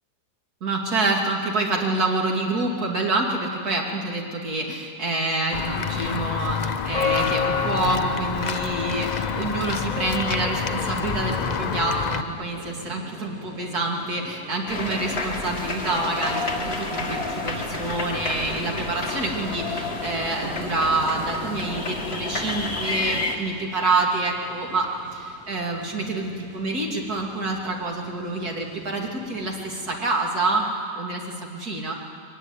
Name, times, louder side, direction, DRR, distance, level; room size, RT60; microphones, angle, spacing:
voice 1, 0.6-30.7 31.0-31.2 31.5-31.9, right 2 dB, 65° right, 0 dB, 3.2 m, -27 dB
Walk footsteps / Bell, 5.5-12.2, left 6 dB, 60° left, 0.4 m, -26 dB
sound 1, 10.6-30.0, equal, 5° left, 7.8 m, -47 dB
sound 2, 14.7-23.4, left 3 dB, 40° left, 2.1 m, -30 dB
22.5 x 18.5 x 9.9 m, 2.3 s
omnidirectional pair, 1.7 m